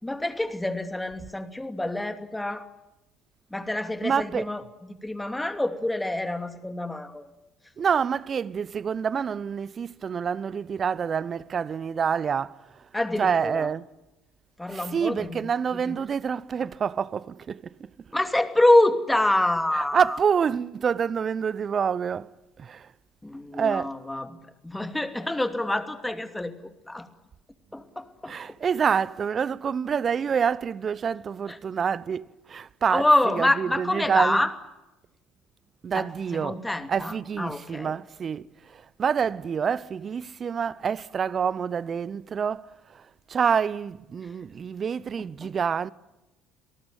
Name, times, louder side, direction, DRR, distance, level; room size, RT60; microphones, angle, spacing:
voice 1, 0.0-2.7 3.5-7.3 12.9-13.7 14.6-15.4 15.7-16.0 18.1-20.2 23.2-26.5 26.9-27.1 27.7-28.3 31.5-31.6 32.9-34.5 35.9-37.9 44.2-44.3 45.4-45.5, left 1 dB, 10° left, 2.7 m, -26 dB
voice 2, 4.0-4.5 7.8-12.9 13.2-13.8 14.7-17.9 19.7-22.3 22.6-22.9 23.5-24.0 28.3-34.4 35.8-36.6 36.9-45.9, right 7 dB, 40° right, 0.9 m, -27 dB
28.0 x 19.0 x 9.2 m
hypercardioid pair, 60°, 0 cm